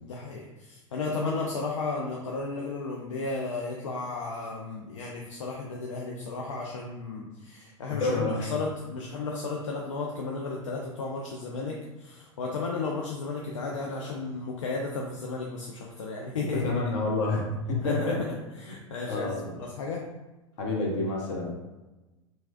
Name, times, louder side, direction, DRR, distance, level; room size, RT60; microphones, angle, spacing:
voice 1, 0.0-16.7 17.8-18.3 18.6-19.3 19.6-20.0, left 3 dB, 80° left, -1 dB, 0.4 m, -34 dB
voice 2, 7.9-8.6 16.5-18.2 19.1-19.6 20.6-21.5, left 2 dB, 60° left, -2 dB, 0.9 m, -29 dB
2.9 x 2.5 x 2.7 m, 1.1 s
figure-of-eight pair, 85°, 16 cm